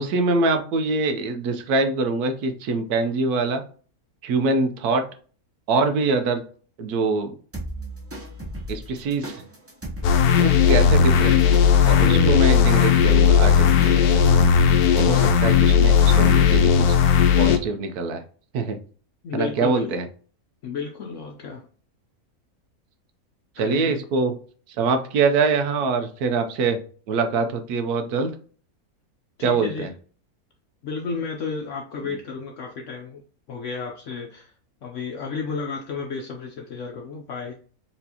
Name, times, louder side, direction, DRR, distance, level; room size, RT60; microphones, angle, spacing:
voice 1, 0.0-3.6 4.2-5.0 5.7-6.4 6.8-7.4 8.7-9.4 10.4-11.4 11.8-14.5 14.9-17.0 17.4-18.2 18.5-18.8 19.3-20.1 23.6-24.3 24.8-26.8 27.1-28.3 29.4-29.9, right 3 dB, 85° right, 7 dB, 1.2 m, -24 dB
sound 1, 7.5-16.7, equal, 15° right, 0.5 m, -36 dB
sound 2, 10.0-17.6, left 7 dB, 90° left, 1.1 m, -16 dB
voice 2, 12.0-13.0 19.2-20.0 20.6-21.6 23.6-24.0 29.4-29.9 30.8-33.2 33.5-34.5 34.8-37.5, left 4 dB, 65° left, 2 dB, 0.9 m, -32 dB
4.3 x 3.3 x 2.8 m, 0.41 s
omnidirectional pair, 1.6 m